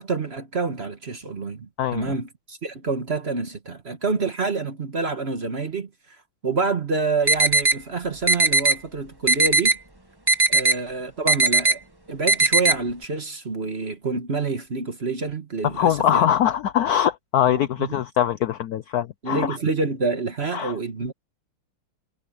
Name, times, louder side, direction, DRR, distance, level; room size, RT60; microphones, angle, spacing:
voice 1, 0.0-5.9 6.4-9.7 10.5-11.8 12.1-16.3 17.4-17.9 19.2-21.1, right 4 dB, 35° right, 1.4 m, -27 dB
voice 2, 1.8-2.1 15.6-19.6 20.5-20.7, left 10 dB, 80° left, 0.8 m, -22 dB
sound 1, 7.3-7.8 8.3-8.8 9.3-9.8 10.3-10.8 11.3-11.7 12.3-12.7, right 3 dB, 15° right, 1.2 m, -18 dB
omnidirectional pair, 2.4 m